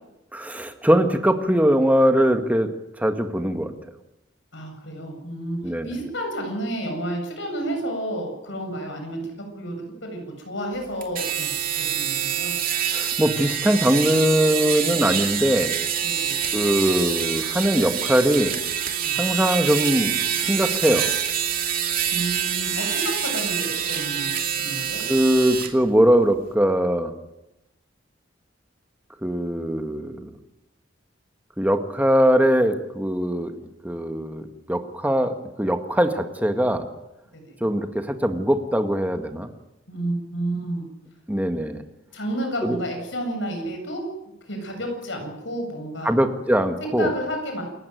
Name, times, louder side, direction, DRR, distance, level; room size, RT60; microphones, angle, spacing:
voice 1, 0.3-2.7 3.0-3.7 5.6-5.9 12.9-15.7 16.5-18.6 19.2-21.1 25.1-27.1 29.2-30.3 31.6-33.5 33.8-36.8 37.6-39.5 41.3-41.8 42.6-42.8 46.0-47.1, equal, 10° right, 6 dB, 1.8 m, -21 dB
voice 2, 4.5-9.2 9.5-9.8 10.0-11.5 11.8-12.5 16.0-16.3 19.0-19.2 22.1-24.3 24.6-25.0 37.4-37.5 39.9-40.8 42.1-44.0 44.5-46.2 46.8-47.6, right 1 dB, 70° left, 3 dB, 7.8 m, -30 dB
sound 1, 11.0-25.7, right 9 dB, 45° right, 2.6 m, -26 dB
28.5 x 15.0 x 9.4 m, 0.94 s
head